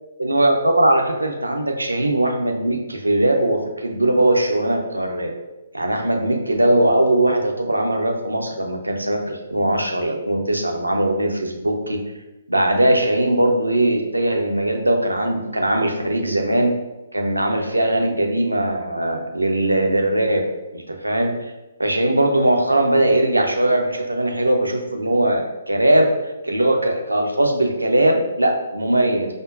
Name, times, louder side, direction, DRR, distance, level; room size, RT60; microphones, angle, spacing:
voice 1, 0.2-5.3 5.7-12.0 12.5-16.7 17.1-20.5 20.7-21.5 21.8-26.1 26.4-29.4, right 1 dB, 80° right, 3 dB, 0.5 m, -20 dB
5.0 x 2.0 x 2.5 m, 1.0 s
figure-of-eight pair, 130°, 0 cm